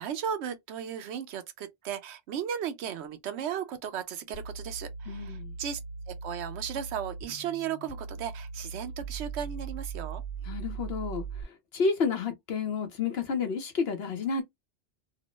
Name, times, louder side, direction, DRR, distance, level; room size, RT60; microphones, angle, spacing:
voice 1, 0.0-5.8 6.1-10.2, right 8 dB, 75° right, 0.9 m, -35 dB
sound 1, 4.3-11.4, right 5 dB, 45° left, 1.0 m, -39 dB
voice 2, 5.1-5.5 10.5-14.4, left 5 dB, 65° left, 0.9 m, -30 dB
3.0 x 2.0 x 2.9 m
omnidirectional pair, 1.2 m